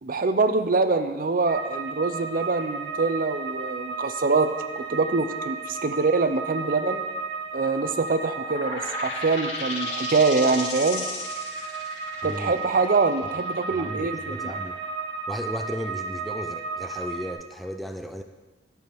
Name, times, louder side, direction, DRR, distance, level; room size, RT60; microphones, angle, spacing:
voice 1, 0.0-4.5 4.8-7.0 7.5-11.1 12.2-14.6, right 3 dB, 50° right, 10 dB, 0.6 m, -24 dB
sound 1, 1.5-17.3, right 4 dB, 80° right, 1.7 m, -34 dB
sound 2, 8.4-15.7, left 3 dB, 80° left, 2.2 m, -36 dB
voice 2, 12.2-12.5 13.7-14.8 15.3-18.2, equal, ahead, 6 dB, 0.4 m, -35 dB
12.5 x 4.8 x 6.9 m, 1.3 s
head